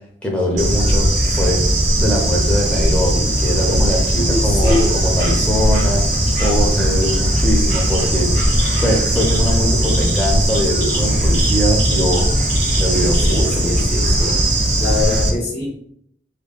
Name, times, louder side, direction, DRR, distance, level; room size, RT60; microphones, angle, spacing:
voice 1, 0.2-1.6 2.0-12.5 12.8-13.9, equal, 5° left, -2 dB, 0.6 m, -22 dB
Bird / Insect, 0.6-15.3, right 1 dB, 65° right, 1.2 m, -17 dB
voice 2, 4.2-4.9 13.3-14.4 14.8-15.8, left 2 dB, 55° left, -4 dB, 0.9 m, -24 dB
3.5 x 2.2 x 2.2 m, 0.67 s
head